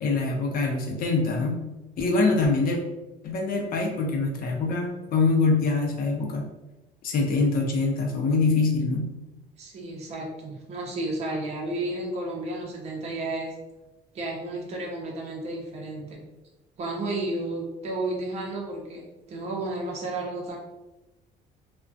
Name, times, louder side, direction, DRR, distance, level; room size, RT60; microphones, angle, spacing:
voice 1, 0.0-1.6 2.0-2.8 3.2-6.5 7.0-9.1, left 3 dB, 60° left, 1 dB, 0.6 m, -24 dB
voice 2, 9.6-13.5 14.1-16.2 16.8-20.6, right 2 dB, 40° right, -2 dB, 0.6 m, -32 dB
2.3 x 2.1 x 2.5 m, 1.1 s
cardioid pair, 110°, 17 cm